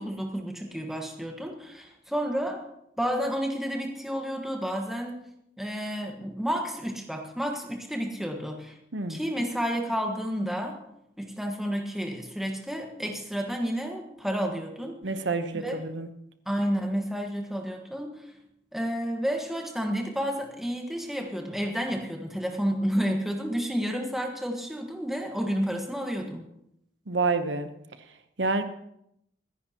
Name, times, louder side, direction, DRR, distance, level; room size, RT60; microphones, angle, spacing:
voice 1, 0.0-2.6 3.0-5.2 5.6-8.8 9.1-10.8 11.2-15.0 15.5-15.8 16.4-18.3 18.7-26.5, equal, ahead, 2 dB, 1.4 m, -30 dB
voice 2, 15.0-16.1 27.1-27.7 28.4-28.6, right 3 dB, 75° right, 9 dB, 0.9 m, -28 dB
25.0 x 10.0 x 3.0 m, 0.78 s
head